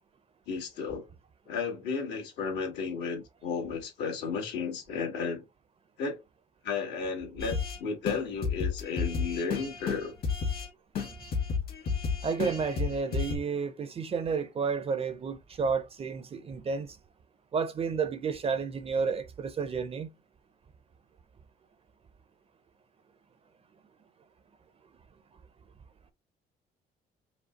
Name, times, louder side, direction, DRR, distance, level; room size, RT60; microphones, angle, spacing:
voice 1, 0.5-1.1 1.5-5.4 6.0-6.2 6.6-10.1, left 5 dB, 75° left, 2.1 m, -33 dB
sound 1, 7.4-7.8 8.1-8.2 8.4-10.7 11.0-13.4, left 5 dB, 60° left, 2.0 m, -31 dB
voice 2, 12.2-17.0 17.5-20.1, right 5 dB, 35° right, 0.6 m, -31 dB
5.1 x 2.3 x 3.8 m
cardioid pair, 115°, 18 cm